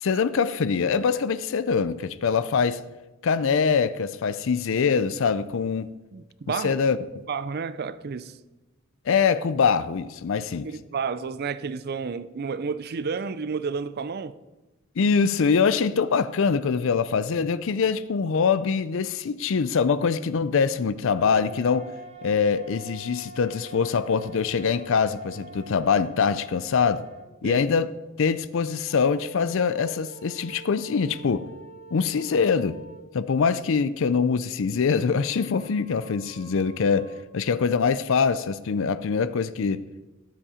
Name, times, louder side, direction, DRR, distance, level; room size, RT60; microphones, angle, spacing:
voice 1, 0.0-2.8 3.2-5.9 6.6-7.0 9.1-10.7 15.0-21.9 22.2-27.0 27.4-27.9 28.2-31.5 31.9-32.8 33.1-39.8, left 5 dB, 65° left, 0.5 m, -24 dB
voice 2, 6.1-6.8 7.3-8.4 10.6-14.4 27.4-27.6, right 5 dB, 50° right, 0.5 m, -31 dB
sound 1, 21.1-27.3 28.9-33.1 35.0-37.2, right 2 dB, 30° right, 1.1 m, -46 dB
12.5 x 7.3 x 5.0 m
head